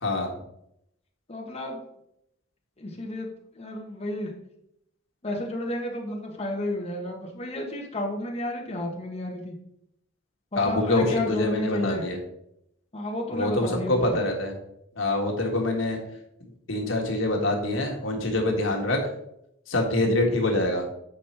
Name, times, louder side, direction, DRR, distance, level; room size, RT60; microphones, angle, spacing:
voice 1, 0.0-0.3 10.6-12.2 13.3-14.6 15.0-16.0 16.7-19.0 19.7-20.8, left 2 dB, 85° left, 1 dB, 1.6 m, -25 dB
voice 2, 1.3-1.8 2.8-3.3 3.5-4.3 5.2-9.5 10.5-12.0 12.9-14.2 20.0-20.2, left 1 dB, 30° left, -1 dB, 1.4 m, -32 dB
7.4 x 5.2 x 4.4 m, 0.77 s
head